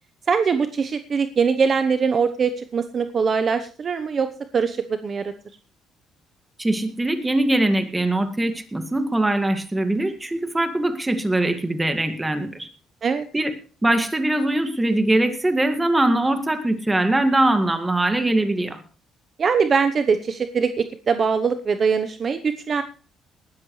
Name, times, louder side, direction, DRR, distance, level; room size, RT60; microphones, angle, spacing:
voice 1, 0.3-5.3 13.0-13.3 19.4-22.8, right 5 dB, 40° right, 9 dB, 0.9 m, -22 dB
voice 2, 6.6-12.7 13.3-13.5 13.8-18.8, right 1 dB, 10° right, 7 dB, 2.0 m, -22 dB
19.5 x 13.5 x 3.2 m, 0.39 s
cardioid pair, 125°, 0 cm